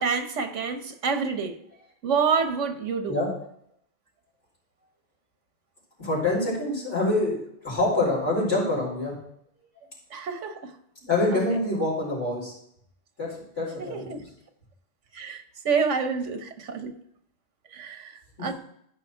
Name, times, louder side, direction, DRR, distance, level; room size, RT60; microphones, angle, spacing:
voice 1, 0.0-1.6 2.0-3.1 10.1-10.7 13.8-14.2 15.1-16.9 17.7-18.5, right 5 dB, 80° right, 1.4 m, -28 dB
voice 2, 6.0-7.4 7.6-9.1 11.0-12.5 13.2-14.1 18.4-18.5, left 2 dB, 75° left, 5.0 m, -25 dB
13.5 x 5.4 x 4.5 m
omnidirectional pair, 1.2 m